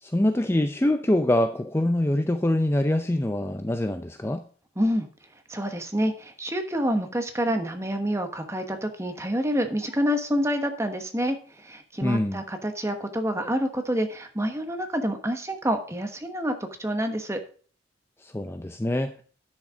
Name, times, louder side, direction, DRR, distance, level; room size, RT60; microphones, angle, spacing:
voice 1, 0.0-4.4 12.0-12.4 18.2-19.1, left 1 dB, 15° left, 8 dB, 0.5 m, -24 dB
voice 2, 4.8-5.1 5.5-17.4, equal, 15° right, 6 dB, 1.2 m, -27 dB
10.5 x 6.5 x 4.9 m, 0.42 s
head